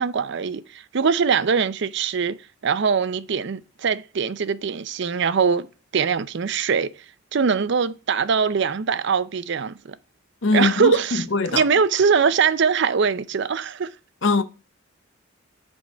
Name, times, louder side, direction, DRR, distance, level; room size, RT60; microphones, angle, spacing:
voice 1, 0.0-2.4 2.6-5.7 5.9-6.9 7.3-9.8 10.5-13.9, right 6 dB, 60° right, 0.5 m, -22 dB
voice 2, 10.4-11.6 14.2-14.4, left 3 dB, 65° left, 0.7 m, -21 dB
5.1 x 4.7 x 5.6 m
head